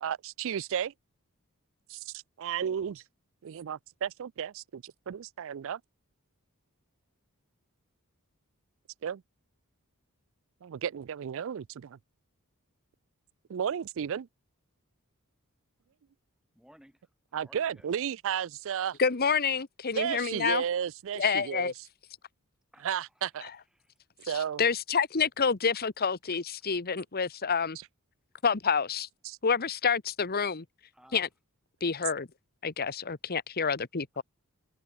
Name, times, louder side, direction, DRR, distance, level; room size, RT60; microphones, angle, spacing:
voice 1, 0.0-0.9 1.9-3.0 3.4-5.8 9.0-9.2 10.6-12.0 13.5-14.3 17.3-19.0 19.9-21.7 22.8-23.5 24.2-24.6 29.2-29.4, right 8 dB, 60° right, 0.4 m, -33 dB
voice 2, 16.5-18.0 22.7-23.1 23.7-24.0 27.7-27.8 28.3-28.4 30.9-31.3 34.1-34.2, equal, 5° right, 4.6 m, -60 dB
voice 3, 19.0-20.6 21.1-21.7 24.3-27.8 28.4-29.1 29.4-30.6 31.1-31.3 31.8-32.3 32.6-34.2, left 6 dB, 45° left, 1.1 m, -28 dB
open air
head